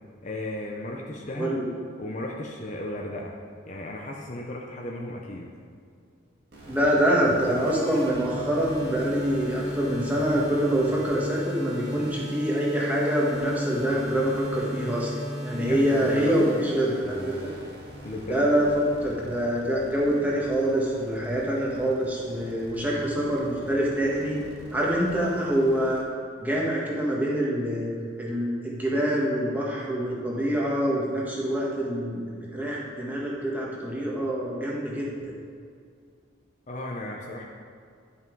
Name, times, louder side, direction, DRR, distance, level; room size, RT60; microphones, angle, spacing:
voice 1, 0.2-1.5 2.0-3.3 3.7-5.5 15.5-16.5 18.0-18.5 36.7-37.5, left 1 dB, 35° left, -1 dB, 0.7 m, -34 dB
sound 1, 6.5-26.0, equal, 50° right, 1.8 m, -37 dB
voice 2, 6.7-15.1 15.4-17.5 18.3-24.4 24.7-26.0 26.4-27.9 28.2-32.2 32.5-35.1, equal, 10° right, -5 dB, 1.5 m, -25 dB
11.0 x 5.8 x 4.6 m, 2.2 s
head